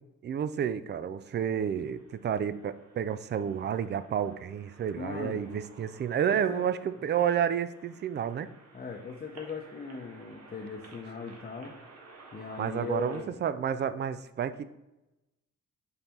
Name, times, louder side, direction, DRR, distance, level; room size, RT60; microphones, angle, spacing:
voice 1, 0.2-8.5 12.6-14.8, right 8 dB, 35° right, 14 dB, 0.4 m, -30 dB
sound 1, 1.5-13.2, right 3 dB, 55° right, 1.4 m, -54 dB
voice 2, 5.0-5.6 6.3-6.7 8.7-11.8 12.3-13.4, left 4 dB, 30° left, -1 dB, 0.8 m, -39 dB
5.5 x 4.1 x 4.4 m, 0.97 s
cardioid pair, 90°, 30 cm